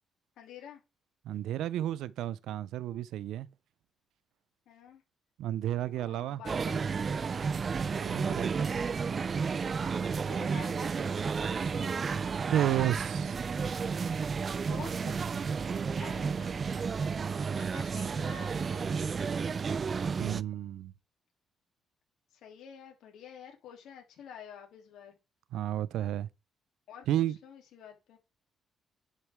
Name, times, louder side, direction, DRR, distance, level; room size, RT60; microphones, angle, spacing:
voice 1, 0.4-0.8 4.7-5.0 5.9-6.9 9.2-12.2 14.6-15.2 16.0-16.8 17.5-19.0 22.4-25.2 26.9-28.2, left 8 dB, 80° left, 2.9 m, -50 dB
voice 2, 1.3-3.5 5.4-6.4 7.9-8.7 12.5-13.4 15.4-15.9 20.2-20.9 25.5-26.3 27.1-27.4, right 12 dB, 85° right, 0.6 m, -32 dB
sound 1, 6.4-20.4, right 5 dB, 40° right, 0.4 m, -32 dB
10.5 x 6.4 x 3.6 m
cardioid pair, 90°, 0 cm